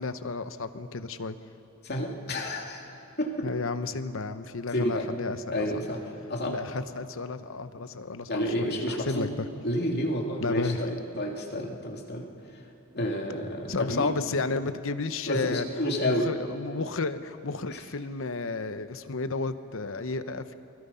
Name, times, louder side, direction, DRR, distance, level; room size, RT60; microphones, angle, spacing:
voice 1, 0.0-1.4 3.4-5.8 6.4-9.5 10.4-10.8 13.7-15.6 16.0-20.5, left 3 dB, 70° left, 11 dB, 0.9 m, -32 dB
voice 2, 1.8-2.8 3.2-3.5 4.7-5.1 5.5-6.6 8.3-9.3 9.6-12.3 12.9-14.1 15.3-16.3 17.7-17.8, equal, 50° left, 1 dB, 2.6 m, -30 dB
29.0 x 21.0 x 5.7 m, 2.8 s
head